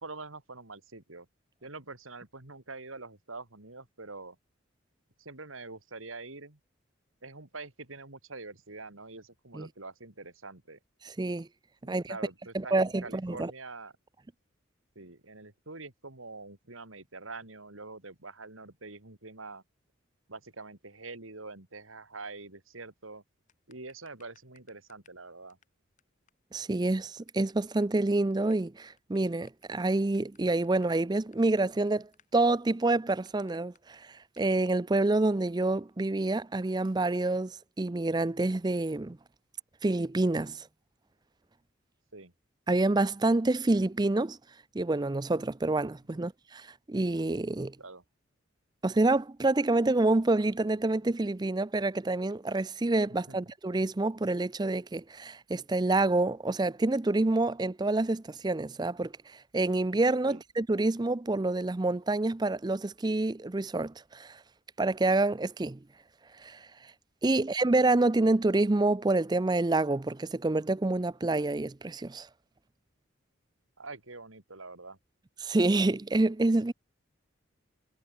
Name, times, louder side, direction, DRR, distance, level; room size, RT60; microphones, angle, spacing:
voice 1, 0.0-1.3 1.6-4.4 5.2-6.6 7.2-10.8 11.8-13.9 15.0-19.6 20.3-23.2 23.7-25.6 42.1-42.3 46.1-46.3 47.8-48.0 53.3-53.4 60.3-60.4 67.4-67.5 73.8-75.0, right 3 dB, 80° right, 3.5 m, -45 dB
voice 2, 11.2-11.5 11.9-12.2 12.5-13.5 26.5-34.1 34.4-39.2 39.8-40.7 42.7-44.4 44.7-47.8 48.8-59.1 59.5-64.4 64.8-65.8 66.4-66.6 67.2-72.3 75.4-76.7, right 2 dB, 20° right, 0.5 m, -27 dB
sound 1, 23.5-25.2 25.5-25.6 26.0-26.1 26.3-26.4 26.6-26.7 26.9-27.5 27.8-28.0 28.3-33.8 34.4-34.5, left 7 dB, 40° left, 4.7 m, -64 dB
head